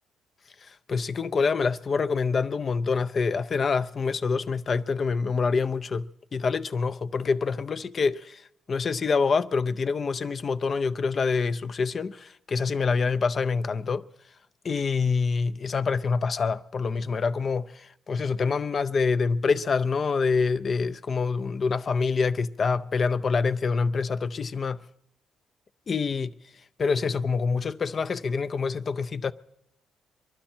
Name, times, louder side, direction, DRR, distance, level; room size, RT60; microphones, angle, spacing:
voice 1, 0.7-6.1 6.3-8.4 8.7-14.0 14.6-24.8 25.9-26.3 26.8-29.3, left 5 dB, 45° left, 0.5 m, -26 dB
23.5 x 11.5 x 4.4 m
cardioid pair, 90°, 0 cm